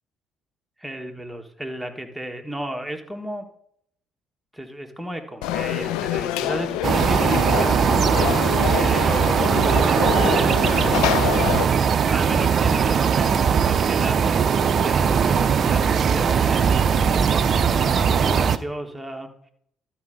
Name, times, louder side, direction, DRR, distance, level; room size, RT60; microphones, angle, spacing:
voice 1, 0.8-3.5 4.5-7.8 8.7-10.7 11.2-14.4 14.8-17.0 17.4-19.3, right 1 dB, 5° right, 3 dB, 1.5 m, -33 dB
Conversation / Crowd, 5.4-11.6, left 13 dB, 70° left, 0.4 m, -26 dB
sound 1, 6.8-18.6, right 6 dB, 50° right, 0.5 m, -20 dB
12.0 x 4.5 x 5.1 m, 0.69 s
hypercardioid pair, 50°, 0 cm